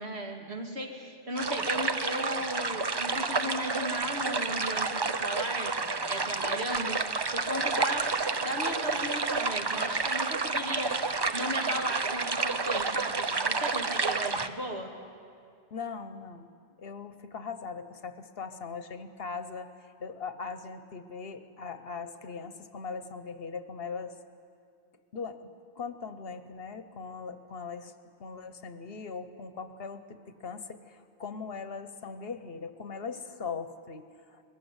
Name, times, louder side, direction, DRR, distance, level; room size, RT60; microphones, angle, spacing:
voice 1, 0.0-5.7 6.1-7.0 7.3-8.0 8.4-10.9 11.3-14.9, equal, 65° right, 1 dB, 2.5 m, -36 dB
sound 1, 1.4-14.5, right 3 dB, 30° right, 0.5 m, -30 dB
voice 2, 15.7-16.5 16.8-19.7 20.0-24.1 25.1-25.5 25.8-27.9 28.2-34.4, left 5 dB, 60° left, 10 dB, 1.1 m, -40 dB
21.0 x 15.5 x 9.6 m, 2.3 s
omnidirectional pair, 1.2 m